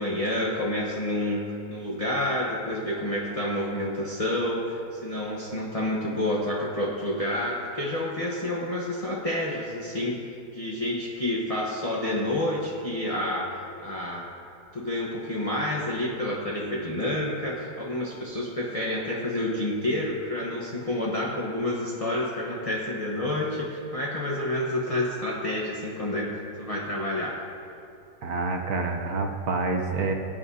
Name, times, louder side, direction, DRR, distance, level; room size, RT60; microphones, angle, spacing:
voice 1, 0.0-10.2 10.5-13.5 13.8-14.3 14.7-26.3 26.6-27.3, left 1 dB, 30° left, -4 dB, 0.6 m, -29 dB
voice 2, 28.2-30.1, right 3 dB, 60° right, 3 dB, 1.1 m, -27 dB
20.0 x 9.1 x 2.8 m, 2.6 s
omnidirectional pair, 2.2 m